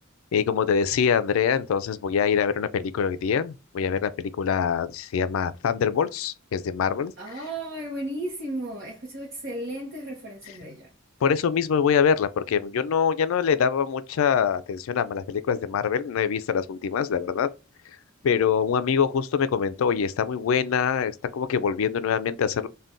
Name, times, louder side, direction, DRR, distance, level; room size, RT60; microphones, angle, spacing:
voice 1, 0.3-7.4 11.2-17.5 18.2-22.7, left 7 dB, 75° left, 0.3 m, -24 dB
voice 2, 7.2-10.9, right 1 dB, 50° right, 0.8 m, -34 dB
2.5 x 2.2 x 3.5 m
head